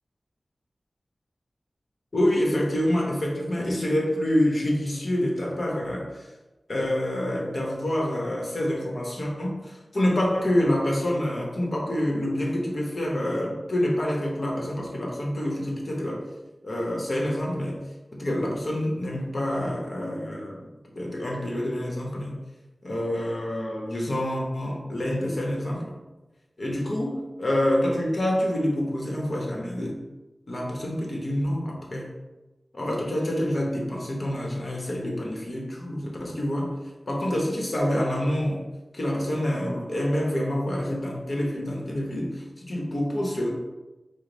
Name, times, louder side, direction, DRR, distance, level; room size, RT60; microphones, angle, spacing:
voice 1, 2.1-6.3 6.7-16.2 16.6-17.8 18.1-20.7 20.9-22.4 22.8-26.0 26.6-30.0 30.5-32.1 32.7-36.7 37.1-38.6 38.9-43.5, left 1 dB, 55° left, -1 dB, 1.0 m, -27 dB
5.0 x 2.1 x 3.9 m, 1.1 s
wide cardioid pair, 75°, 0 cm